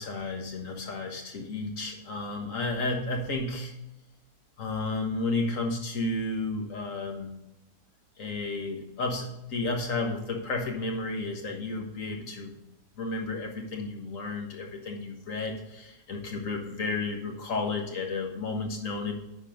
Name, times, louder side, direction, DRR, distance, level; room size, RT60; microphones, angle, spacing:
voice 1, 0.0-3.7 4.6-7.3 8.2-12.5 13.0-19.1, left 3 dB, 50° left, 2 dB, 1.6 m, -32 dB
10.0 x 4.4 x 5.2 m, 0.90 s
omnidirectional pair, 1.8 m